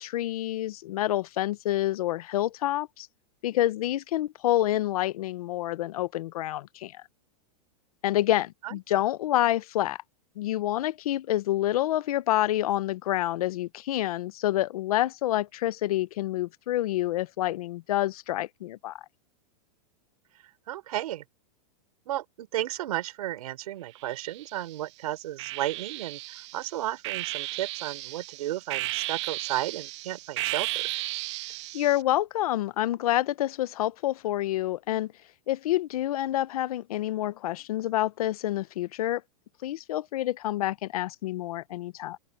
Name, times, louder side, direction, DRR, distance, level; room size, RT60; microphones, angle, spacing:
voice 1, 0.0-3.1 3.4-7.0 8.0-10.0 10.4-18.9 31.7-35.1 35.5-39.2 39.6-42.2, left 14 dB, 65° left, 0.9 m, -28 dB
voice 2, 20.7-21.2 22.1-26.2 26.5-30.9, right 14 dB, 65° right, 4.7 m, -33 dB
sound 1, 24.0-24.7 25.4-32.0, right 18 dB, 45° right, 1.3 m, -34 dB
open air
supercardioid pair, 170°, 20 cm